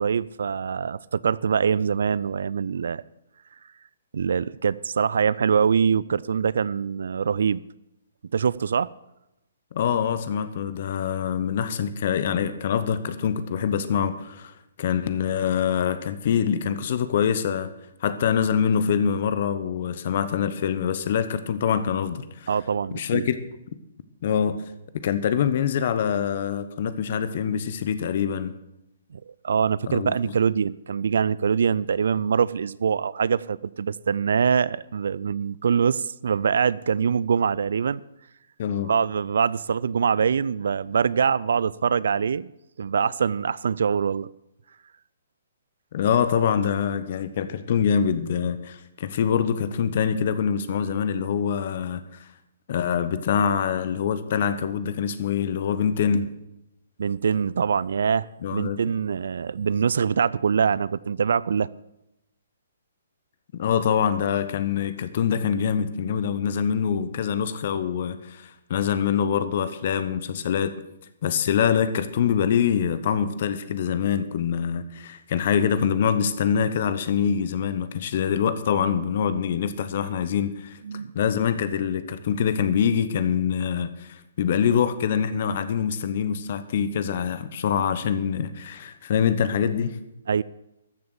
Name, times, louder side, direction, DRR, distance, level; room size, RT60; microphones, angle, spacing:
voice 1, 0.0-3.0 4.1-7.6 8.3-8.9 22.5-23.2 29.1-38.0 38.9-42.5 42.8-44.3 57.0-61.7 80.8-81.1 90.3-90.4, right 6 dB, 65° right, 0.4 m, -24 dB
voice 2, 9.7-17.7 18.0-22.5 22.9-23.4 24.2-24.6 24.9-28.5 29.9-30.2 38.6-38.9 45.9-52.0 52.7-56.3 58.4-58.8 63.5-70.8 71.2-80.8 81.1-90.0, left 8 dB, 50° left, 1.1 m, -24 dB
14.0 x 7.0 x 6.8 m
figure-of-eight pair, 130°, 0 cm